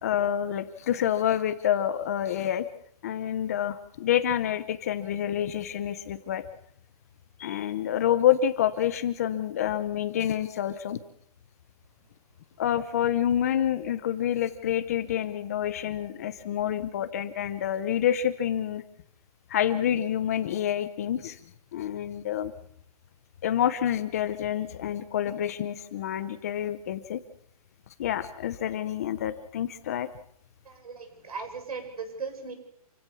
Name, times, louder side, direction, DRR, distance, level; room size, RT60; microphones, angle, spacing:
voice 1, 0.0-2.7 3.0-6.4 7.4-11.0 12.6-18.8 19.5-21.4 21.7-22.5 23.4-27.2 28.0-30.1, left 10 dB, 25° left, 13 dB, 0.8 m, -28 dB
voice 2, 30.7-32.5, right 5 dB, 70° right, 6 dB, 7.5 m, -37 dB
28.0 x 16.0 x 7.1 m, 0.67 s
hypercardioid pair, 180°, 20 cm